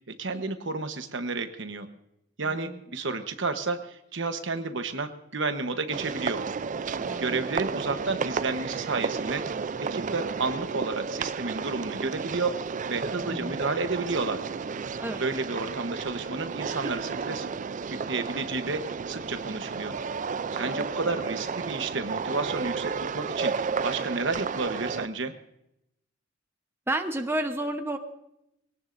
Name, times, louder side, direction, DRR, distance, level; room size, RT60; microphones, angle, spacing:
voice 1, 0.1-1.9 2.4-6.4 7.2-9.5 9.8-12.6 12.9-14.4 15.2-17.5 17.9-19.9 20.5-23.5 23.8-25.3, right 3 dB, 65° right, 8 dB, 1.1 m, -31 dB
voice 2, 2.4-2.8 7.0-7.4 13.2-13.5 15.0-15.2 20.5-20.8 26.9-28.0, right 1 dB, 10° right, 5 dB, 0.9 m, -31 dB
sound 1, 5.9-25.1, right 5 dB, 40° right, 0.4 m, -32 dB
22.5 x 18.0 x 2.6 m, 0.82 s
head